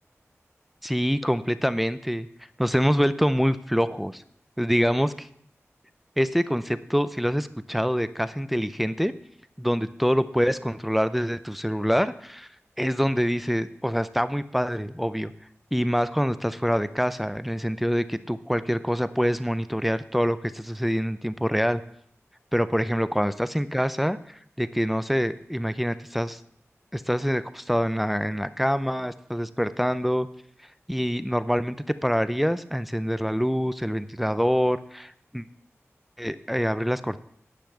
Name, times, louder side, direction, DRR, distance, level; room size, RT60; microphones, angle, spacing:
voice 1, 0.8-2.3 2.6-4.2 4.6-5.3 6.2-9.1 9.6-12.5 12.8-15.3 15.7-21.8 22.5-26.4 26.9-30.3 30.9-31.8 32.0-35.5 36.2-37.2, equal, ahead, 13 dB, 0.5 m, -25 dB
10.5 x 5.7 x 7.7 m, 0.67 s
wide cardioid pair, 60°, 5 cm